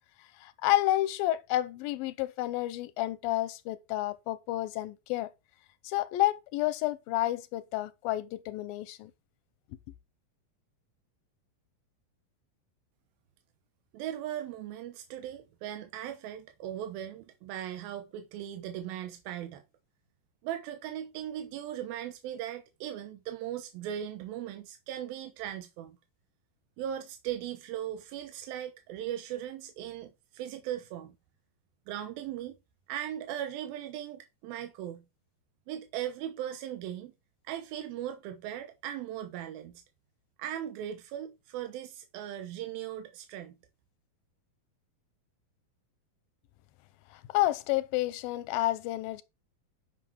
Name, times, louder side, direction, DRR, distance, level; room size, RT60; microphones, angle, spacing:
voice 1, 0.4-5.3 5.8-9.1 47.1-49.2, left 15 dB, 85° left, 2.4 m, -30 dB
voice 2, 13.9-19.6 20.4-26.0 26.8-31.2 31.9-32.6 32.9-35.0 35.7-37.1 37.4-39.8 40.4-43.6, right 11 dB, 90° right, 2.8 m, -38 dB
9.9 x 6.0 x 4.5 m
omnidirectional pair, 4.1 m